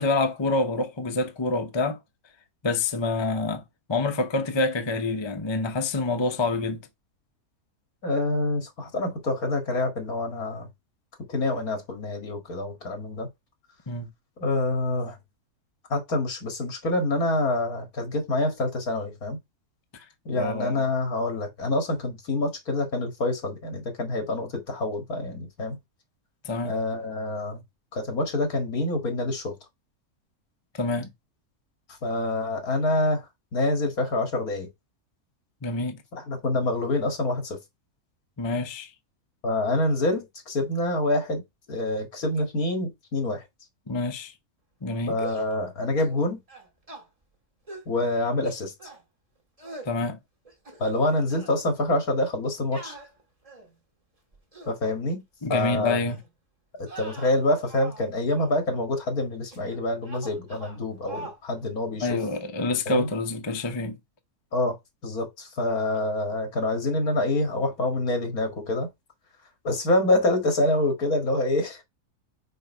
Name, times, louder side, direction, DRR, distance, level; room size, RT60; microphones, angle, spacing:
voice 1, 0.0-2.0 2.6-3.6 3.9-6.8 13.9-14.1 19.9-20.0 20.4-20.9 26.4-26.8 30.7-31.1 35.6-36.0 38.4-38.9 43.9-44.3 44.8-45.2 49.9-50.2 55.4-56.2 62.0-64.0, left 3 dB, 25° left, 0.6 m, -27 dB
voice 2, 8.0-10.7 11.3-13.3 14.4-15.2 15.9-19.4 20.3-25.8 26.6-27.6 27.9-29.6 32.0-33.3 33.5-34.7 36.1-37.6 39.4-41.4 41.7-43.4 45.1-46.4 47.9-48.7 50.8-53.0 54.7-55.2 55.5-56.0 56.8-62.2 62.9-63.1 64.5-68.9 69.6-71.8, left 2 dB, 70° left, 2.4 m, -26 dB
sound 1, 45.1-45.5 46.0-46.2 46.5-47.0 47.7-47.9 48.4-49.0 49.6-49.9 50.4-51.0 51.3-51.6 52.7-53.8 54.3-54.8 55.5-55.7 56.1-56.3 56.8-58.1 58.3-58.6 59.5-59.8 60.0-60.8 61.1-61.4, right 2 dB, 25° right, 1.7 m, -43 dB
5.4 x 4.6 x 5.4 m
omnidirectional pair, 1.6 m